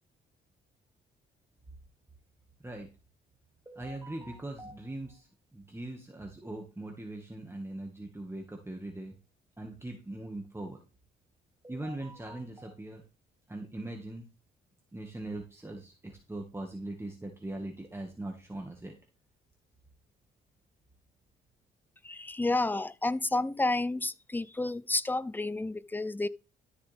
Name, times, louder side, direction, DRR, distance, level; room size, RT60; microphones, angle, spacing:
voice 1, 3.7-9.2 9.6-10.8 11.6-13.0 13.5-14.3 14.9-19.0, right 1 dB, 10° right, 1.9 m, -41 dB
voice 2, 22.0-26.3, left 2 dB, 10° left, 0.6 m, -30 dB
13.0 x 7.0 x 3.5 m
cardioid pair, 90°, 20 cm